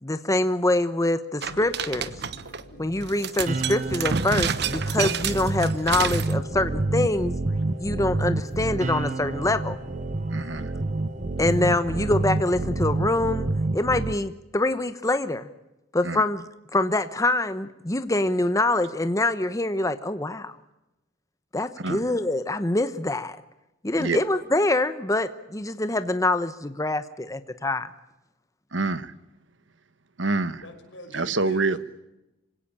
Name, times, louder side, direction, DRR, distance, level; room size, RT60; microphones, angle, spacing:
voice 1, 0.0-2.1 2.8-7.4 7.8-9.8 11.4-15.5 15.9-16.4 16.7-20.6 21.5-23.4 23.8-27.9, left 2 dB, 15° left, 11 dB, 1.0 m, -25 dB
sound 1, 1.4-13.6, equal, 65° left, 6.8 m, -46 dB
sound 2, 1.4-2.6 3.0-6.3, right 6 dB, 60° right, 1.1 m, -29 dB
sound 3, 3.5-14.1, right 2 dB, 40° right, 0.8 m, -28 dB
voice 2, 10.3-10.7 16.0-16.2 21.8-22.0 24.0-24.2 28.7-29.1 30.2-30.6 31.1-31.8, right 3 dB, 80° right, 14 dB, 1.4 m, -26 dB
voice 3, 30.6-31.8, equal, 90° left, 5 dB, 5.9 m, -43 dB
26.5 x 17.5 x 8.8 m, 0.96 s
head